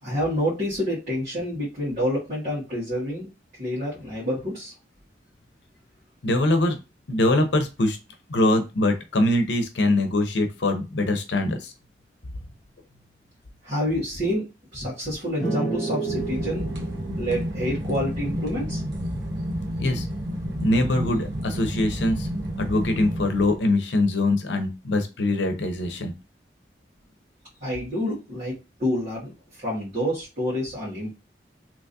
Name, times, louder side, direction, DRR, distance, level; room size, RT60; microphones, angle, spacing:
voice 1, 0.0-3.3 3.6-4.7 13.6-16.7 17.2-18.8 27.6-29.3 29.6-31.1, equal, 45° right, -10 dB, 1.8 m, -28 dB
voice 2, 6.2-6.8 7.1-8.0 8.3-11.7 19.8-20.1 20.6-22.3 22.6-26.1, left 1 dB, 90° left, 6 dB, 0.7 m, -23 dB
sound 1, 15.4-19.0, right 3 dB, ahead, 1.6 m, -32 dB
sound 2, 16.0-23.6, equal, 75° right, 1.0 m, -30 dB
3.5 x 3.0 x 2.7 m, 0.28 s
head